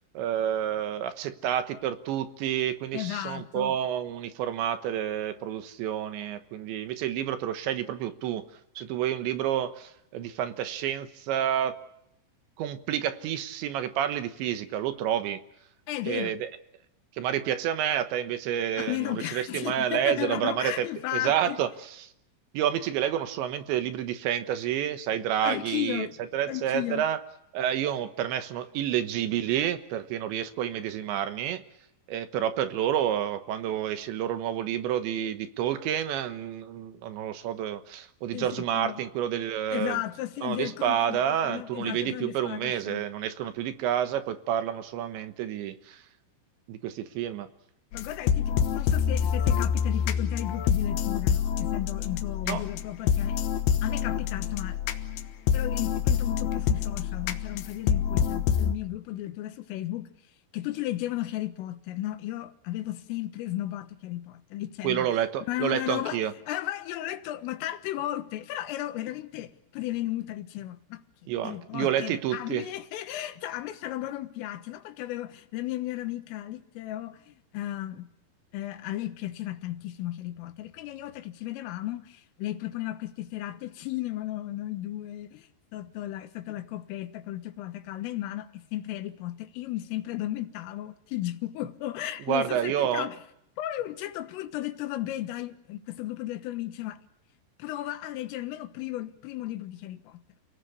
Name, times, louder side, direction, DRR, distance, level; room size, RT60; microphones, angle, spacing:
voice 1, 0.1-8.5 8.8-11.8 12.6-15.4 16.1-16.5 17.2-20.9 21.1-21.7 22.0-22.1 22.5-26.1 26.3-27.2 27.5-31.6 32.1-40.0 40.4-46.0 46.7-47.5 52.5-52.6 64.8-66.3 71.3-72.6 92.3-93.1, right 10 dB, 75° right, 3.2 m, -29 dB
voice 2, 2.9-3.8 15.9-16.4 18.8-21.6 25.4-26.1 26.5-27.1 38.3-39.0 39.7-43.1 47.9-53.4 53.8-54.8 55.5-60.1 60.5-65.1 65.5-71.0 71.4-78.1 78.5-93.2 93.6-97.0 97.6-100.2, left 14 dB, 85° left, 3.9 m, -34 dB
sound 1, 47.9-58.7, left 8 dB, 70° left, 2.7 m, -27 dB
29.5 x 18.0 x 8.3 m
omnidirectional pair, 5.7 m